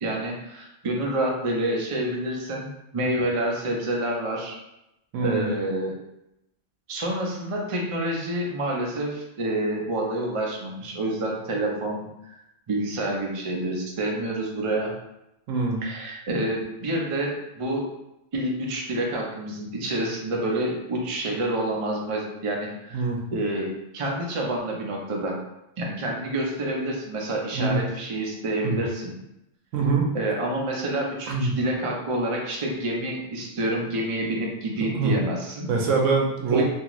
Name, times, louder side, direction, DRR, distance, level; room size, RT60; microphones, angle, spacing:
voice 1, 0.0-4.6 5.2-5.9 6.9-12.3 12.7-14.9 15.8-17.9 18.3-25.4 25.8-29.2 30.1-35.7 36.5-36.6, right 1 dB, 55° right, -1 dB, 0.3 m, -28 dB
voice 2, 5.1-5.5 15.5-15.8 22.9-23.2 27.5-27.8 28.6-28.8 29.7-30.1 31.3-31.5 34.8-35.2 35.7-36.6, right 4 dB, 75° right, 0 dB, 1.0 m, -24 dB
2.7 x 2.4 x 2.9 m, 0.86 s
omnidirectional pair, 1.3 m